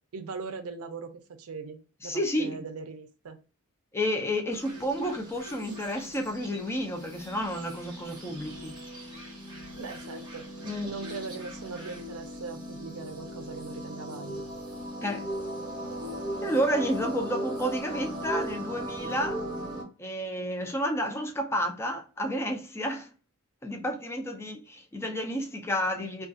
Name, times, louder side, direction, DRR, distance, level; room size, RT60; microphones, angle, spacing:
voice 1, 0.1-3.4 9.8-10.5 10.8-14.4 26.0-26.1, right 4 dB, 75° right, 0.5 m, -40 dB
voice 2, 2.0-2.7 3.9-8.7 9.8-9.9 10.6-10.9 15.0-15.3 16.4-19.4 20.0-23.1 23.6-26.3, equal, 10° left, 0.4 m, -31 dB
sound 1, 4.5-19.8, equal, 20° right, 0.7 m, -38 dB
2.3 x 2.3 x 2.5 m
head